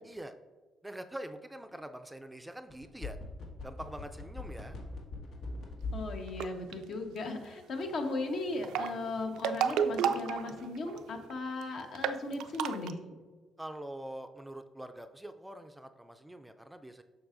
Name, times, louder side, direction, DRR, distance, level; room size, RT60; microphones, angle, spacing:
voice 1, 0.0-0.3 0.8-3.2 3.6-4.8 13.6-17.0, right 1 dB, 5° right, 8 dB, 0.4 m, -44 dB
sound 1, 2.7-6.1 6.4-6.5, left 2 dB, 80° left, 1.5 m, -40 dB
voice 2, 5.9-13.0, left 2 dB, 65° left, 4 dB, 1.0 m, -37 dB
sound 2, 6.3-6.7 8.5-11.0 11.3-11.4 11.6-11.7 11.9-12.9, right 8 dB, 90° right, 0.3 m, -31 dB
7.0 x 6.1 x 2.5 m, 1.3 s
cardioid pair, 90°, 0 cm